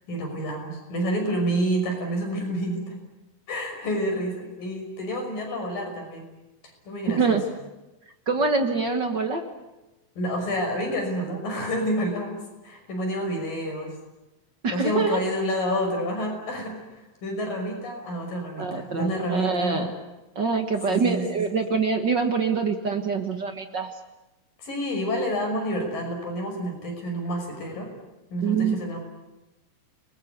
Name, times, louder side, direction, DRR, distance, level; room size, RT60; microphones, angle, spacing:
voice 1, 0.1-3.0 3.5-6.3 6.9-7.4 10.2-13.9 14.7-19.9 20.9-21.4 24.6-27.9 28.3-29.0, equal, 75° left, 3 dB, 7.5 m, -29 dB
voice 2, 7.1-7.4 8.3-9.4 14.6-15.2 18.6-19.9 20.3-23.9 28.4-28.8, right 4 dB, 45° right, 5 dB, 1.5 m, -25 dB
30.0 x 20.5 x 8.3 m, 1.0 s
omnidirectional pair, 4.0 m